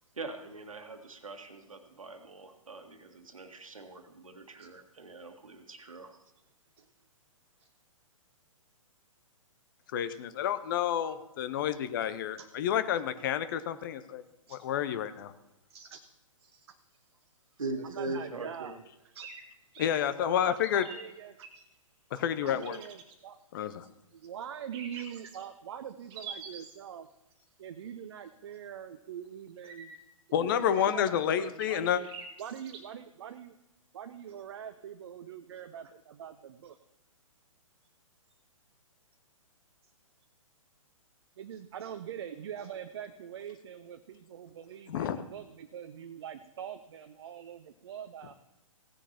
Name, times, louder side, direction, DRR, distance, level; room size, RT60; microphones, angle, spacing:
voice 1, 0.1-6.2 17.6-18.7, right 2 dB, 70° right, 6 dB, 1.6 m, -41 dB
voice 2, 9.9-14.2 14.5-15.3 19.8-20.8 22.1-22.8 23.5-23.9 30.3-32.0 44.9-45.2, left 9 dB, 40° left, 12 dB, 0.6 m, -29 dB
voice 3, 15.7-16.0 16.4-16.8 17.8-18.8 19.1-19.3 20.2-21.6 22.1-23.4 24.1-27.1 27.4-30.0 30.4-32.1 32.4-33.6 33.9-36.8 41.4-48.3, right 9 dB, 50° right, 8 dB, 0.6 m, -43 dB
sound 1, 19.2-19.4 19.7-20.0 20.6-21.5 22.5-23.1 24.7-25.4 26.1-26.7 29.6-30.0 30.5-31.1 31.6-32.8, right 6 dB, 25° right, 1.8 m, -45 dB
16.5 x 9.8 x 2.9 m, 0.91 s
figure-of-eight pair, 120°, 18 cm